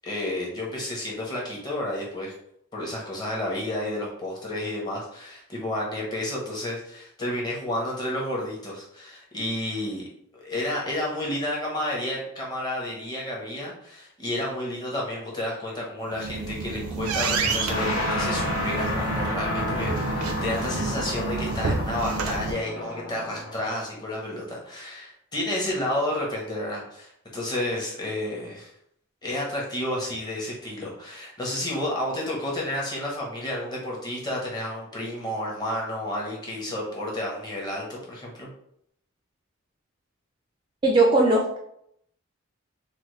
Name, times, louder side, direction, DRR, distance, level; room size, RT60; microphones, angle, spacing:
voice 1, 0.0-2.3 2.7-10.1 10.3-28.7 29.2-38.5, left 1 dB, 20° left, -3 dB, 0.8 m, -31 dB
sound 1, 16.0-22.5, right 4 dB, 85° right, 0.5 m, -29 dB
sound 2, 17.4-23.7, left 2 dB, 60° left, 1.0 m, -31 dB
voice 2, 40.8-41.6, right 2 dB, 20° right, -1 dB, 0.3 m, -20 dB
3.9 x 2.0 x 3.1 m, 0.72 s
head